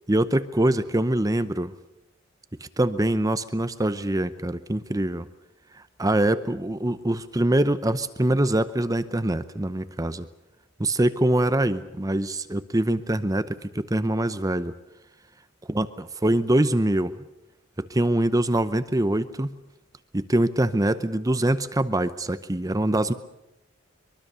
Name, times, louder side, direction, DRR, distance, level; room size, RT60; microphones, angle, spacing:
voice 1, 0.1-1.7 2.8-5.2 5.7-10.3 10.8-14.7 15.7-17.1 17.8-19.5 20.1-23.1, right 1 dB, 20° right, 12 dB, 0.7 m, -24 dB
23.5 x 23.0 x 6.8 m, 0.92 s
head